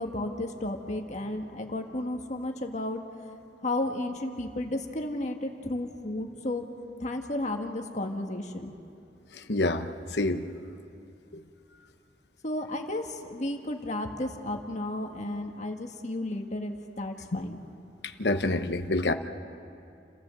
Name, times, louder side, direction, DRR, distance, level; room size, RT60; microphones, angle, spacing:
voice 1, 0.0-3.0 3.6-6.6 7.0-8.7 12.4-17.6, left 1 dB, 45° left, 3 dB, 1.7 m, -33 dB
voice 2, 9.3-9.8 10.1-10.4 17.3-17.4 18.2-19.1, left 2 dB, 70° left, 8 dB, 1.1 m, -27 dB
29.5 x 14.5 x 7.7 m, 2.6 s
head